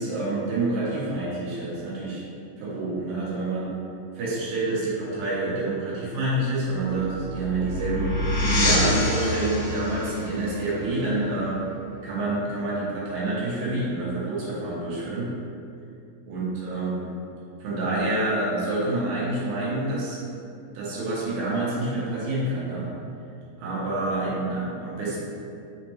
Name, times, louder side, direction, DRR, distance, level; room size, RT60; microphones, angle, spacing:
voice 1, 0.0-2.2 2.6-3.8 4.1-11.6 12.0-15.3 16.3-17.1 17.6-20.2 20.7-22.9 23.6-25.2, right 2 dB, 70° right, -7 dB, 1.9 m, -27 dB
sound 1, 6.7-12.0, left 2 dB, 75° left, 1.8 m, -27 dB
5.2 x 2.1 x 2.9 m, 2.6 s
omnidirectional pair, 3.9 m